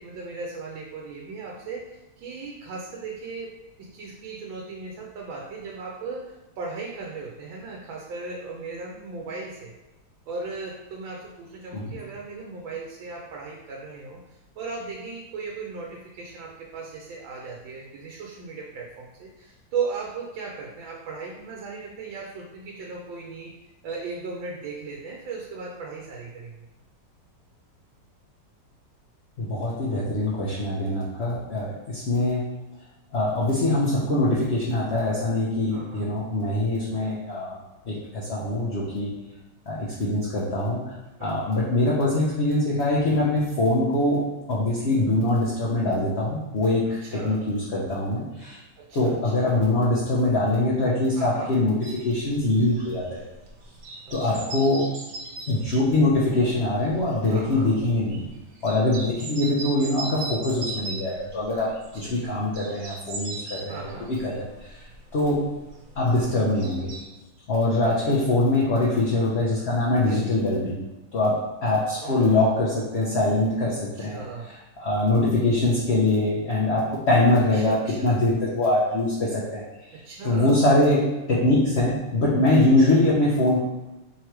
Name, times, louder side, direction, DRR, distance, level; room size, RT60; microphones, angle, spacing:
voice 1, 0.0-9.7 10.3-14.2 14.6-23.5 23.8-26.7 35.7-36.1 41.2-41.6 46.9-47.4 48.8-49.6 51.2-51.5 54.1-54.5 57.3-57.7 62.0-62.4 63.7-64.1 67.8-68.2 70.1-70.4 72.0-72.6 73.9-74.5 75.2-75.5 77.5-78.2 79.9-80.6, right 4 dB, 85° right, -1 dB, 1.4 m, -37 dB
voice 2, 29.4-32.4 33.1-37.6 37.9-39.1 39.7-40.8 41.2-44.2 44.5-48.6 48.9-51.8 52.0-53.2 54.1-54.9 55.5-58.2 58.6-64.8 65.1-65.4 66.0-66.9 67.5-70.8 71.1-74.2 74.8-79.6 79.9-80.0 80.2-83.6, left 2 dB, 50° left, -6 dB, 0.8 m, -23 dB
sound 1, 51.8-67.0, right 2 dB, 70° right, 1.4 m, -39 dB
3.8 x 3.0 x 4.6 m, 1.0 s
omnidirectional pair, 2.0 m